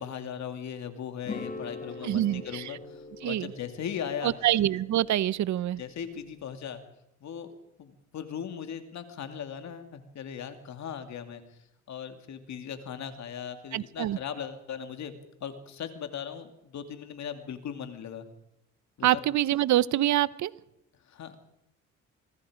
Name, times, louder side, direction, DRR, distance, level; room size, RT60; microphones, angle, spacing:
voice 1, 0.0-4.3 5.8-6.8 7.2-7.5 7.8-11.6 11.9-18.3 19.0-19.2 21.1-21.3, left 8 dB, 65° left, 8 dB, 2.6 m, -38 dB
sound 1, 1.2-6.4, left 3 dB, 25° left, 2.3 m, -43 dB
voice 2, 2.0-2.7 3.2-3.5 4.2-5.8 13.7-14.2 19.0-20.5, right 13 dB, 70° right, 19 dB, 0.8 m, -25 dB
25.0 x 21.0 x 5.1 m, 0.82 s
cardioid pair, 90°, 30 cm